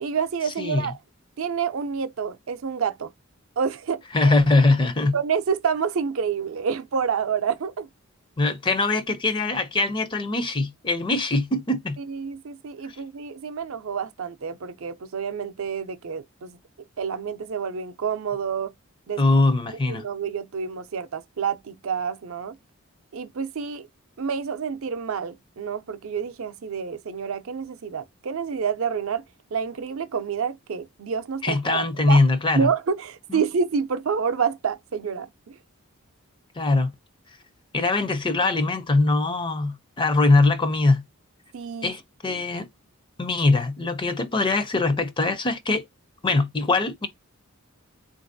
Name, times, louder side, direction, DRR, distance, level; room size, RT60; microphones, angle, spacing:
voice 1, 0.0-1.0 1.4-3.1 3.6-4.3 5.1-7.9 12.0-16.6 17.0-18.7 19.1-19.2 19.9-22.5 23.1-23.9 24.2-29.2 29.5-32.2 32.6-35.5 41.5-41.9 42.3-42.4, right 6 dB, 70° right, 0.5 m, -28 dB
voice 2, 0.6-0.9 4.1-5.1 8.4-12.0 19.2-20.0 31.4-32.7 33.3-33.4 36.6-36.9 37.7-41.0 41.8-42.7 43.2-45.8 46.2-47.1, left 3 dB, 20° left, 0.4 m, -22 dB
3.8 x 2.5 x 2.6 m
head